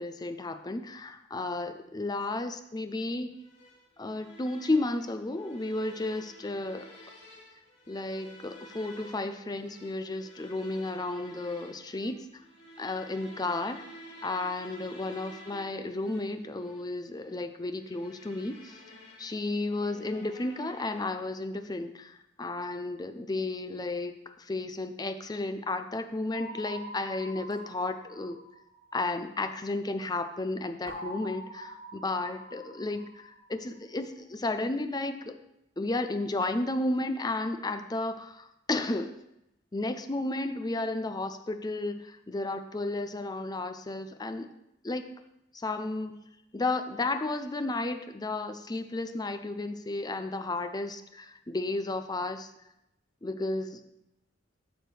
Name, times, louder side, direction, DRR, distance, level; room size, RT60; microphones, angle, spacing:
voice 1, 0.0-3.4 4.0-6.9 7.9-12.3 12.8-13.8 14.2-18.8 19.2-28.4 28.9-35.4 35.8-39.1 39.7-44.5 44.8-45.2 45.5-46.2 46.5-52.5 53.2-53.8, left 2 dB, 20° left, 8 dB, 0.5 m, -33 dB
sound 1, 3.4-21.4, left 1 dB, 65° left, 2.3 m, -52 dB
sound 2, 26.3-29.2 30.9-33.7, equal, 85° right, 3.6 m, -45 dB
12.0 x 6.4 x 3.3 m, 0.86 s
head